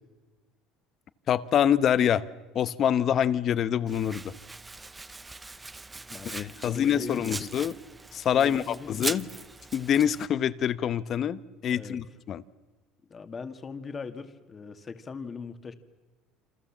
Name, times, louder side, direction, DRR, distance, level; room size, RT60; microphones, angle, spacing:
voice 1, 1.3-2.2 2.5-4.3 6.2-7.7 8.1-9.3 9.7-12.4, left 9 dB, 45° left, 14 dB, 1.0 m, -25 dB
Domestic sounds home sounds, 3.9-10.3, right 3 dB, 15° right, 0.8 m, -40 dB
voice 2, 6.6-7.4 8.3-9.1 11.7-12.0 13.1-15.7, left 5 dB, 25° left, 8 dB, 1.9 m, -40 dB
28.0 x 26.0 x 7.4 m, 1.2 s
supercardioid pair, 115°, 0 cm